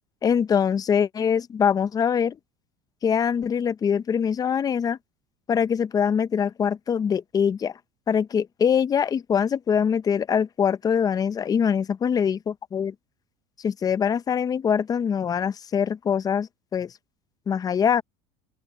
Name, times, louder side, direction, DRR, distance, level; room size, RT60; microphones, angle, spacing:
voice 1, 0.2-2.4 3.0-5.0 5.5-7.7 8.1-12.9 13.6-16.9 17.5-18.0, left 7 dB, 25° left, 0.6 m, -23 dB
open air
supercardioid pair, 125°, 15 cm